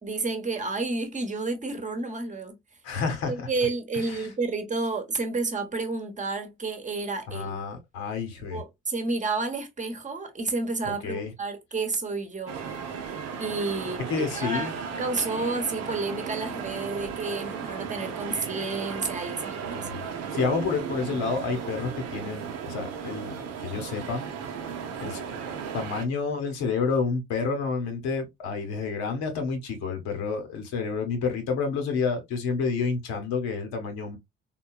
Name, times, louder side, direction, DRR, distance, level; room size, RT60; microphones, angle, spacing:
voice 1, 0.0-2.6 3.3-7.5 8.5-12.6 13.4-14.7 15.0-19.9, right 3 dB, 25° right, 1.0 m, -30 dB
voice 2, 2.8-3.5 3.9-4.3 7.3-8.6 10.8-11.3 14.1-14.7 19.6-20.1 20.3-24.2 25.0-25.2 25.7-34.2, left 5 dB, 65° left, 1.0 m, -29 dB
sound 1, 12.5-26.0, right 7 dB, 55° right, 0.7 m, -35 dB
3.7 x 2.2 x 2.3 m
figure-of-eight pair, 45°, 30 cm